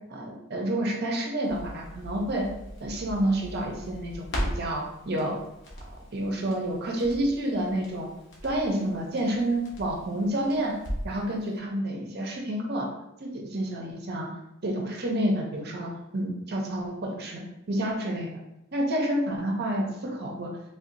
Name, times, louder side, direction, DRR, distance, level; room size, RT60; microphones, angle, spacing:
voice 1, 0.1-2.4 2.8-5.4 6.1-8.1 8.4-10.7 11.0-12.9 13.2-14.3 14.6-17.4 17.7-18.3 18.7-20.5, right 1 dB, 50° right, 0 dB, 0.6 m, -29 dB
Crackle, 1.4-11.2 11.5-11.6, equal, 55° left, 0.9 m, -39 dB
3.6 x 2.7 x 2.6 m, 0.89 s
head